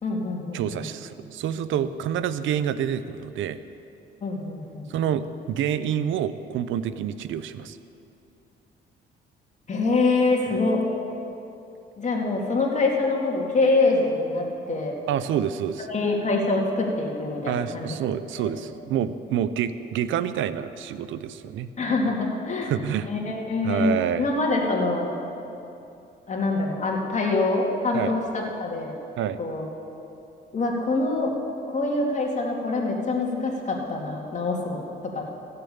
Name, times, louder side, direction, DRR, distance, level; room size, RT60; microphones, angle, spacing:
voice 1, 0.0-0.8 4.2-4.9 9.7-10.8 12.0-15.0 15.8-17.9 18.4-18.5 21.8-22.7 23.0-25.1 26.3-29.0 29.4-29.6 30.5-31.3 31.7-35.3, left 3 dB, 35° left, -1 dB, 2.5 m, -25 dB
voice 2, 0.5-3.6 4.9-7.8 15.1-15.9 17.5-21.7 22.7-23.1 23.6-24.3 27.9-28.1 29.2-29.4, right 9 dB, 80° right, 13 dB, 0.6 m, -27 dB
15.5 x 6.7 x 8.6 m, 2.8 s
cardioid pair, 90°, 20 cm